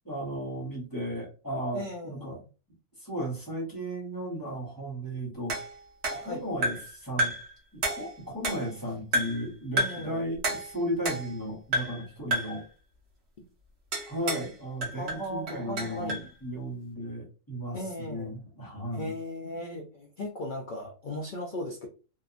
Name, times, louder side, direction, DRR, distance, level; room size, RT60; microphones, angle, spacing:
voice 1, 0.0-2.4 3.0-5.6 6.1-7.3 7.7-12.6 14.1-19.1, equal, 15° left, 0.9 m, -35 dB
voice 2, 1.7-2.4 6.2-6.4 9.8-10.2 14.9-16.2 17.7-18.3 18.9-21.9, left 1 dB, 75° left, 0.4 m, -37 dB
sound 1, 5.5-6.9 7.2-7.5 7.8-8.8 9.1-9.5 9.8-10.1 10.4-11.4 11.7-12.0 12.3-12.6 13.9-14.5 14.8-16.3, right 1 dB, 55° right, 1.1 m, -31 dB
2.8 x 2.3 x 2.4 m
omnidirectional pair, 1.4 m